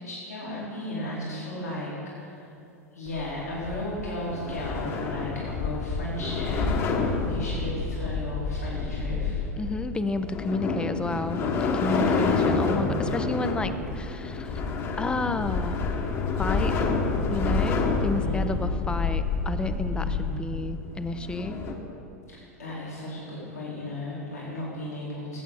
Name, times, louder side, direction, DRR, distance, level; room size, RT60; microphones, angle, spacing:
voice 1, 0.0-2.5 2.9-9.5 17.8-18.5 19.9-20.3 22.3-25.4, left 1 dB, 75° left, -7 dB, 2.7 m, -35 dB
sound 1, 3.1-21.7, left 4 dB, 30° left, 1.2 m, -28 dB
voice 2, 9.6-14.5 15.0-15.8 16.4-16.8 17.3-21.6, left 2 dB, 10° left, 10 dB, 0.5 m, -31 dB
18.0 x 8.2 x 4.0 m, 2.7 s
figure-of-eight pair, 90°, 9 cm